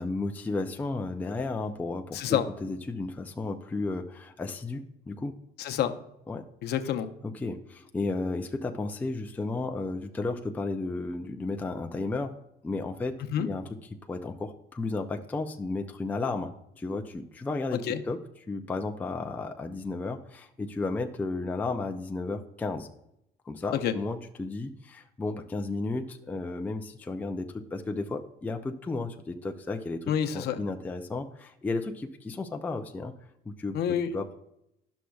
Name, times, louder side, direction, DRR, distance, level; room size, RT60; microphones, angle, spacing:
voice 1, 0.0-5.3 6.3-6.4 7.2-12.4 12.6-13.6 14.1-17.8 18.1-18.2 18.5-22.9 23.5-33.1 33.5-33.8 34.1-34.4, left 3 dB, 10° left, 4 dB, 0.3 m, -33 dB
voice 2, 2.1-2.5 5.6-6.0 6.6-7.1 13.3-13.5 17.7-18.0 23.7-23.9 30.1-30.6 33.7-34.1, left 9 dB, 65° left, 8 dB, 0.6 m, -28 dB
11.5 x 6.2 x 2.3 m, 0.80 s
cardioid pair, 165°, 18 cm